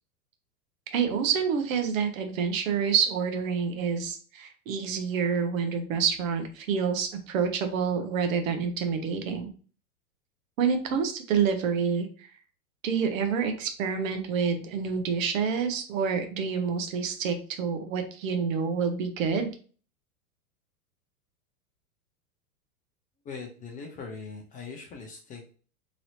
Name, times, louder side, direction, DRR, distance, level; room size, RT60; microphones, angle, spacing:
voice 1, 0.9-9.5 10.6-12.3 12.8-19.5, right 6 dB, 60° right, 6 dB, 0.8 m, -28 dB
voice 2, 23.2-25.4, left 5 dB, 20° left, 1 dB, 0.5 m, -41 dB
3.1 x 2.7 x 2.6 m, 0.39 s
hypercardioid pair, 100°, 45 cm